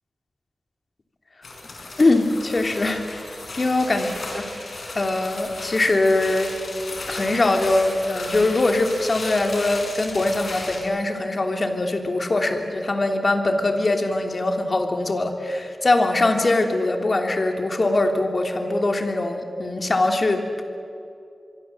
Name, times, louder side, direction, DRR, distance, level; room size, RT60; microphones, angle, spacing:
sound 1, 1.4-10.8, left 2 dB, 70° left, 5.5 m, -35 dB
voice 1, 2.0-3.2 3.6-4.4 4.9-6.5 7.1-20.6, left 2 dB, 45° left, 5 dB, 3.1 m, -22 dB
25.0 x 23.5 x 7.8 m, 2.5 s
wide cardioid pair, 70°, 0 cm